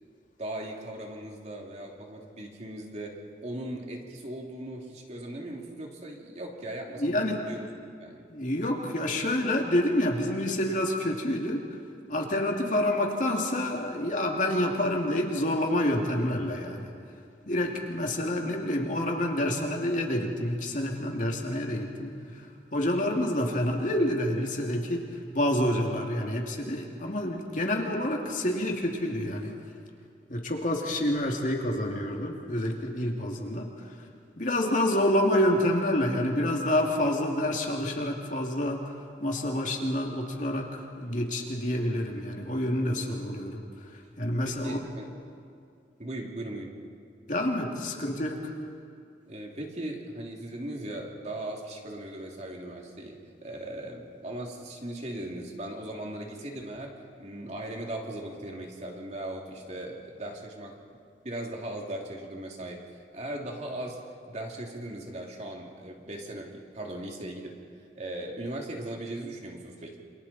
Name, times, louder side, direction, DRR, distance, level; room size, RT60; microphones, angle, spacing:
voice 1, 0.4-7.7 8.0-8.3 33.8-33.9 43.0-43.2 44.4-45.1 46.0-46.8 49.3-60.8 61.2-62.8 63.1-67.6 67.9-70.0, right 1 dB, 40° right, 0 dB, 2.9 m, -38 dB
voice 2, 7.0-7.4 8.3-11.6 12.1-16.9 17.5-22.1 22.7-25.0 25.3-29.5 30.3-33.9 34.4-38.8 39.2-43.6 44.2-44.8 47.3-48.5, left 1 dB, 45° left, 1 dB, 2.7 m, -28 dB
28.5 x 27.0 x 4.4 m, 2.4 s
head